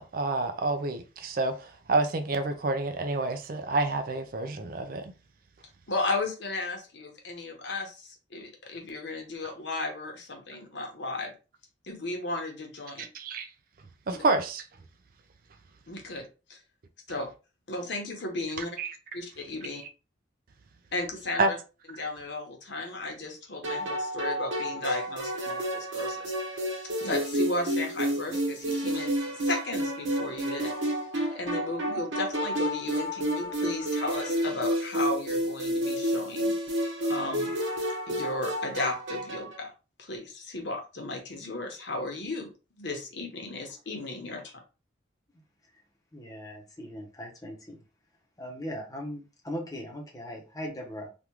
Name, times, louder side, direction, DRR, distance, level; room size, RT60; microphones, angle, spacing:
voice 1, 0.1-5.0 13.0-13.5 14.1-14.6 18.8-18.9 21.4-21.5, right 3 dB, 45° right, 0.4 m, -28 dB
voice 2, 5.9-11.3 11.8-13.0 14.1-14.2 15.9-16.2 16.5-16.6 17.1-17.3 17.7-18.7 19.1-19.8 20.9-21.6 22.0-26.3 26.6-26.7 27.0-30.7 31.3-36.5 37.1-37.5 38.1-39.7 40.0-42.5 42.8-44.4, left 2 dB, 65° left, 0.9 m, -35 dB
sound 1, 23.6-39.6, equal, 75° right, 1.2 m, -30 dB
voice 3, 46.1-47.8 48.4-51.1, equal, 20° left, 0.8 m, -39 dB
3.4 x 2.4 x 3.0 m
head